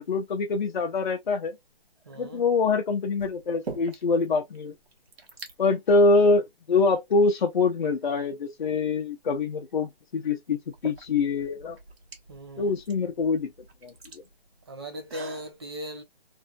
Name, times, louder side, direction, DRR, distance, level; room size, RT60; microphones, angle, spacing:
voice 1, 0.0-1.5 2.2-4.7 5.6-11.8 12.6-13.5 13.8-13.9, left 3 dB, 50° left, 0.6 m, -24 dB
voice 2, 2.0-2.5 12.3-12.7 14.7-16.0, equal, 25° right, 0.6 m, -38 dB
sound 1, 2.0-2.4 3.2-4.3 4.5-4.6 4.9-5.5 6.4-6.5 7.1-8.0 9.7-9.8 10.5-15.5, right 4 dB, 75° right, 1.1 m, -44 dB
2.6 x 2.5 x 2.2 m
hypercardioid pair, 160°, 31 cm